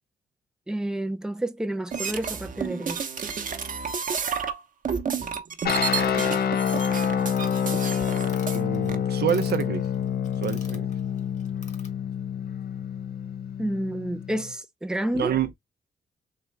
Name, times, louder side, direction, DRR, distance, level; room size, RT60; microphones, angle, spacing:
voice 1, 0.7-3.0 13.6-15.3, right 1 dB, 5° right, 0.6 m, -30 dB
sound 1, 1.9-4.6 4.9-8.6 8.9-9.0, right 6 dB, 50° right, 0.9 m, -31 dB
sound 2, 5.6-14.5, left 8 dB, 65° left, 0.6 m, -27 dB
sound 3, 5.9-11.9, left 3 dB, 40° left, 1.6 m, -47 dB
voice 2, 8.5-9.9 10.4-10.9 15.1-15.5, right 9 dB, 70° right, 0.6 m, -28 dB
3.8 x 2.9 x 3.3 m
cardioid pair, 65°, 18 cm